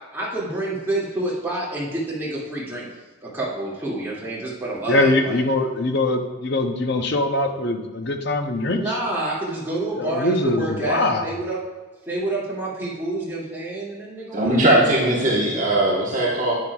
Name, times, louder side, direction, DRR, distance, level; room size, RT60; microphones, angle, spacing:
voice 1, 0.1-2.9 3.2-5.4 8.6-11.6 12.1-14.5 14.8-15.6, right 2 dB, 10° right, -7 dB, 2.3 m, -28 dB
voice 2, 4.9-8.9 9.9-11.4, left 2 dB, 55° left, 6 dB, 0.7 m, -22 dB
voice 3, 14.3-16.5, right 1 dB, 40° right, -4 dB, 1.3 m, -19 dB
9.9 x 8.9 x 2.4 m, 1.2 s
head